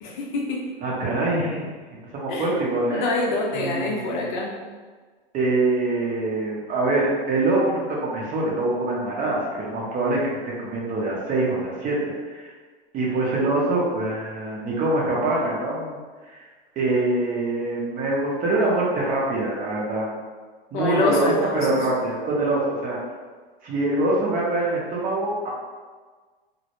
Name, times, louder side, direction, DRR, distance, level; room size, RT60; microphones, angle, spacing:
voice 1, 0.0-0.7 2.3-2.6 2.9-4.5 20.7-21.8, left 2 dB, 55° left, -2 dB, 0.6 m, -26 dB
voice 2, 0.8-3.1 3.5-4.2 5.3-12.0 12.3-12.5 12.9-16.0 16.3-16.4 16.8-20.1 20.7-23.0 23.6-25.5, right 2 dB, 30° right, -4 dB, 0.6 m, -24 dB
2.1 x 2.0 x 2.9 m, 1.4 s
hypercardioid pair, 105°, 29 cm